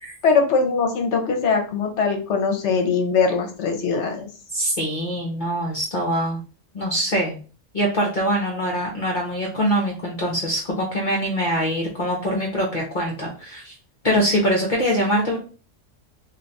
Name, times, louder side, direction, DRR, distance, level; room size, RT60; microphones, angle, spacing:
voice 1, 0.2-4.3, left 5 dB, 70° left, 4 dB, 1.0 m, -21 dB
voice 2, 4.5-6.4 6.7-7.4 7.7-13.7 14.0-15.4, equal, 50° left, -2 dB, 0.8 m, -23 dB
2.5 x 2.3 x 4.0 m, 0.36 s
omnidirectional pair, 1.3 m